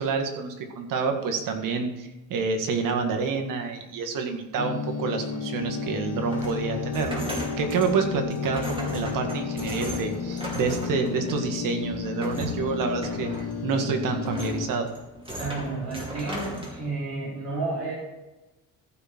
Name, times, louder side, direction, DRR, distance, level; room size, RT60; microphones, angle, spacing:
voice 1, 0.0-7.3 7.6-14.9, right 5 dB, 70° right, 4 dB, 2.0 m, -28 dB
sound 1, 4.6-14.7, left 6 dB, 50° left, 1.4 m, -32 dB
sound 2, 5.5-16.8, equal, 15° right, 2.7 m, -37 dB
voice 2, 15.4-17.9, right 3 dB, 50° right, -8 dB, 4.1 m, -31 dB
14.5 x 6.1 x 4.5 m, 1.1 s
cardioid pair, 155°, 34 cm